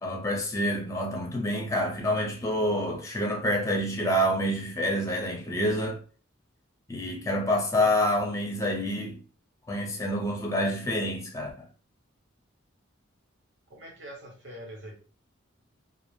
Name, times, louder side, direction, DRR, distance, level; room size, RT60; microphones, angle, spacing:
voice 1, 0.0-6.0 6.9-9.2 9.7-11.5, equal, 15° left, 0.6 m, -27 dB
voice 2, 13.7-14.9, equal, 65° right, 0.8 m, -43 dB
2.5 x 2.0 x 3.0 m
head